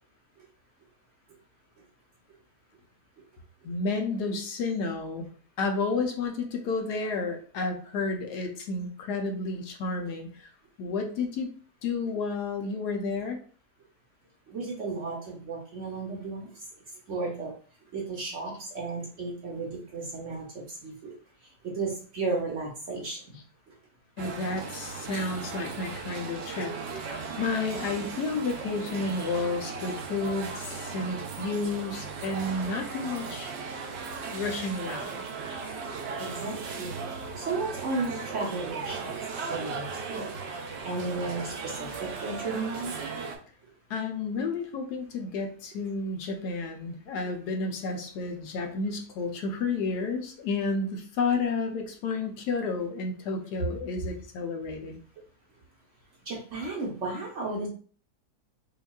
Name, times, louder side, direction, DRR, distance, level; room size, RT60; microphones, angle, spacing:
voice 1, 3.6-5.3 5.6-10.5 10.8-11.5 11.8-13.4 23.3-23.4 24.2-33.5 34.3-35.2 43.9-55.0, left 3 dB, 75° left, 4 dB, 1.2 m, -31 dB
voice 2, 14.5-16.5 17.1-17.5 17.9-21.1 21.7-23.4 36.2-37.0 37.4-39.2 39.5-40.3 40.8-42.9 56.3-57.7, right 3 dB, 55° right, -1 dB, 0.9 m, -34 dB
sound 1, 24.2-43.4, right 5 dB, 90° right, 0.5 m, -37 dB
5.3 x 2.4 x 2.3 m, 0.44 s
omnidirectional pair, 1.8 m